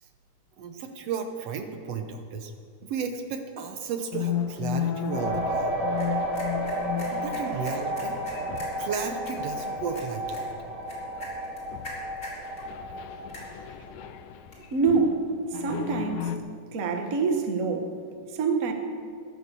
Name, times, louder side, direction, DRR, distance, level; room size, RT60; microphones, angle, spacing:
voice 1, 0.6-2.5 2.8-5.8 7.1-8.2 8.8-10.5 13.5-13.6, right 6 dB, 70° right, 6 dB, 1.6 m, -34 dB
sound 1, 4.1-9.0 9.3-10.8 11.2-11.4 11.7-15.2 15.5-16.4, left 9 dB, 90° left, 2.3 m, -35 dB
sound 2, 5.1-14.2, right 1 dB, 40° right, 3.7 m, -32 dB
sound 3, 5.2-14.7, left 1 dB, 20° left, 3.7 m, -46 dB
voice 2, 13.3-13.7 14.7-15.2 15.6-16.4 16.7-17.9 18.3-18.7, right 4 dB, 90° right, 5 dB, 0.7 m, -26 dB
15.0 x 11.5 x 6.9 m, 2.3 s
omnidirectional pair, 3.7 m